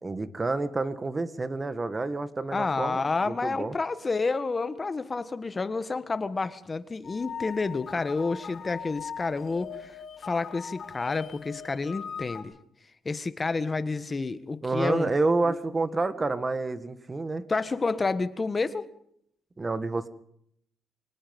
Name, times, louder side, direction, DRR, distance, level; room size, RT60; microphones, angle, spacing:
voice 1, 0.0-3.8 14.6-17.4 19.6-20.1, right 3 dB, 25° right, 13 dB, 1.8 m, -29 dB
voice 2, 2.5-12.5 13.0-15.1 15.4-15.5 17.5-18.9, left 3 dB, 30° left, 13 dB, 1.6 m, -29 dB
sound 1, 7.0-12.4, left 7 dB, 50° left, 6.3 m, -40 dB
24.5 x 20.0 x 5.5 m, 0.71 s
cardioid pair, 90°, 0 cm